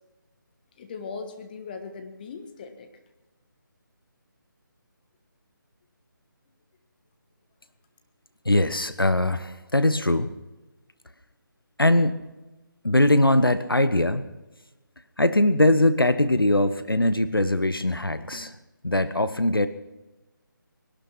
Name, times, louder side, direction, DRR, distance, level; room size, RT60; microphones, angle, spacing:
voice 1, 0.8-2.9, left 4 dB, 25° left, 6 dB, 1.5 m, -39 dB
voice 2, 8.4-10.3 11.8-12.2 12.8-14.2 15.2-18.5 18.8-19.7, left 1 dB, 90° left, 12 dB, 1.2 m, -21 dB
20.5 x 12.0 x 5.9 m, 1.1 s
figure-of-eight pair, 155°, 11 cm